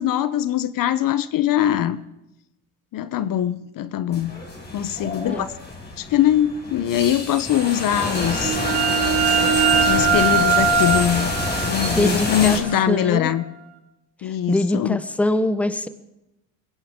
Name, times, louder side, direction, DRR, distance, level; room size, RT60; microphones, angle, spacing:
voice 1, 0.0-2.0 2.9-4.3 4.7-5.5 6.0-8.6 9.8-11.3 11.6-13.4 14.2-15.0, left 11 dB, 50° left, 15 dB, 0.8 m, -22 dB
sound 1, 4.1-12.6, left 2 dB, 25° left, 5.2 m, -27 dB
sound 2, 8.0-13.5, right 5 dB, 60° right, 2.3 m, -22 dB
voice 2, 11.9-12.6 12.9-13.3 14.2-15.9, left 1 dB, 5° left, 12 dB, 1.0 m, -23 dB
21.5 x 16.5 x 3.7 m, 0.90 s
supercardioid pair, 85°, 42 cm